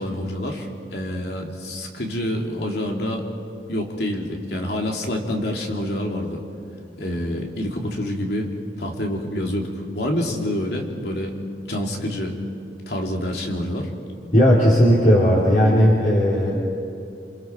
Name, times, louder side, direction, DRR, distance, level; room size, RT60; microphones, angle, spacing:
voice 1, 0.0-3.2 3.7-6.4 7.0-11.4 11.7-12.4 12.9-13.9, left 1 dB, 70° left, 1 dB, 2.9 m, -27 dB
voice 2, 14.3-16.6, equal, 45° left, -6 dB, 3.4 m, -16 dB
27.5 x 27.0 x 4.7 m, 2.7 s
head